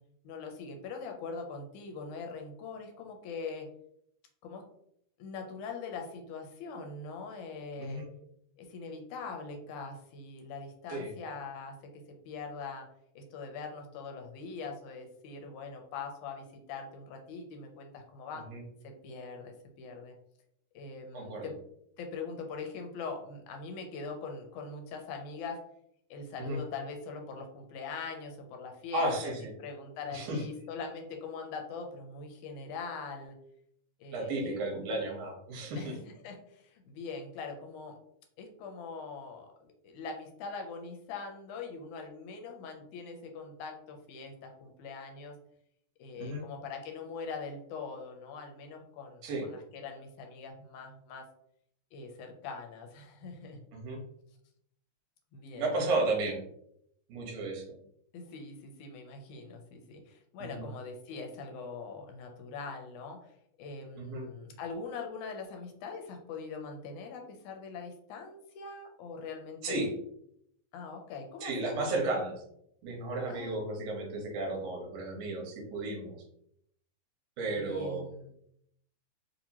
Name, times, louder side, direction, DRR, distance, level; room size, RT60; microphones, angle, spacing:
voice 1, 0.2-3.7 4.4-4.6 5.2-8.0 8.6-12.9 13.2-18.4 18.8-20.1 20.8-21.5 22.0-25.6 26.1-29.3 29.6-33.4 34.0-34.6 35.7-38.0 38.4-45.4 46.0-51.2 51.9-53.6 55.3-55.7 58.1-63.3 63.6-69.9 70.7-72.0 73.3-73.6 77.5-78.3, left 4 dB, 85° left, 3 dB, 2.0 m, -42 dB
voice 2, 7.8-8.1 10.9-11.1 18.5-18.6 21.1-21.5 26.4-26.6 28.9-29.5 30.1-30.4 34.1-36.0 46.2-46.4 49.2-49.5 53.7-54.0 55.6-56.4 57.1-57.6 60.4-60.7 64.0-64.3 69.6-69.9 71.4-72.3 72.8-76.2 77.4-78.1, right 2 dB, 65° right, 0 dB, 2.0 m, -33 dB
4.6 x 2.8 x 2.8 m, 0.72 s
omnidirectional pair, 3.5 m